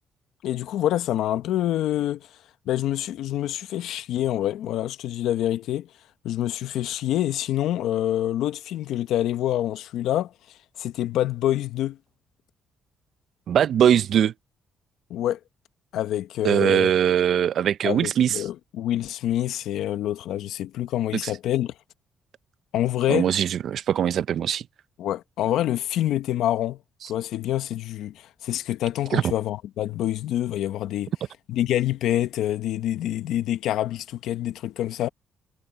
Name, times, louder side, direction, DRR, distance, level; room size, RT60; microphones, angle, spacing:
voice 1, 0.4-2.3 2.7-5.9 6.2-10.3 10.8-12.0 15.1-15.4 15.9-16.9 17.8-21.7 22.7-23.3 25.0-26.8 27.1-31.1 31.5-35.1, left 12 dB, 85° left, 1.1 m, -26 dB
voice 2, 13.5-14.3 16.4-18.5 21.2-21.3 23.1-24.7 29.1-29.2, right 9 dB, 65° right, 0.6 m, -21 dB
cardioid pair, 90°, 0 cm